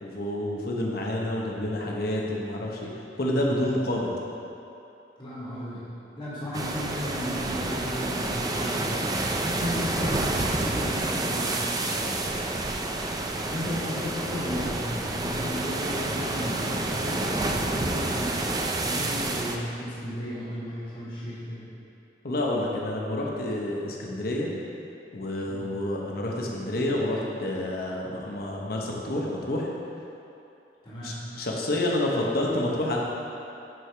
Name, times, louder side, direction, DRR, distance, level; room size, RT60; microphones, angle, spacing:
voice 1, 0.0-2.9 3.2-4.1 12.0-12.5 22.2-24.5 25.1-29.7 31.0-33.0, left 1 dB, 60° left, -2 dB, 1.1 m, -29 dB
voice 2, 5.2-5.8 6.2-9.0 9.3-11.7 13.0-18.4 18.8-21.7 25.5-25.7 30.8-31.2, equal, 30° left, -10 dB, 1.7 m, -35 dB
sound 1, 6.5-19.6, right 2 dB, 20° right, 0.4 m, -29 dB
10.5 x 4.8 x 3.4 m, 2.8 s
head